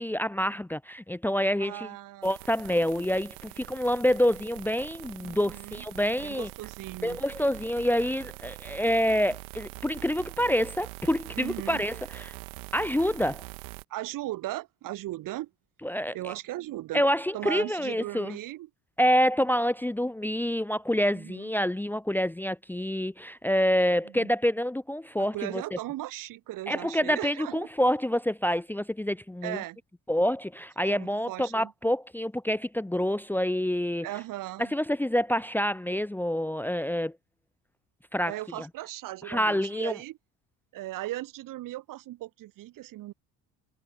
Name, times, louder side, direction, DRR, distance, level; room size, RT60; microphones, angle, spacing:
voice 1, 0.0-1.9 2.2-6.5 7.0-12.3 12.7-13.4 15.8-16.3 16.9-18.4 19.0-25.6 26.7-29.6 30.1-34.1 34.6-37.1 38.1-38.7 39.3-39.9, equal, 5° left, 0.9 m, -27 dB
voice 2, 1.6-2.3 5.2-5.8 6.2-7.2 11.3-11.8 13.9-15.5 16.1-17.0 17.3-18.7 21.1-21.5 24.0-24.3 25.2-27.7 29.4-29.8 30.8-31.7 34.0-34.7 38.3-40.2 40.7-43.1, right 16 dB, 70° right, 4.3 m, -37 dB
sound 1, 2.2-13.8, right 31 dB, 90° right, 2.8 m, -44 dB
supercardioid pair, 90°, 33 cm